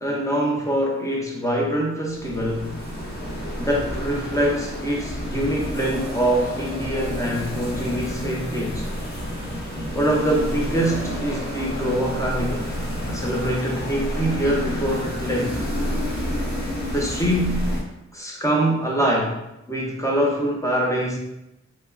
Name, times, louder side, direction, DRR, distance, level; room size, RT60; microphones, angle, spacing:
voice 1, 0.0-2.8 3.6-8.9 9.9-12.7 13.1-15.6 16.9-17.7 18.1-19.4 19.7-21.2, right 1 dB, 10° left, -2 dB, 0.6 m, -24 dB
sound 1, 2.1-17.8, equal, 35° left, 0.9 m, -29 dB
2.9 x 2.3 x 2.4 m, 0.89 s
wide cardioid pair, 75°, 30 cm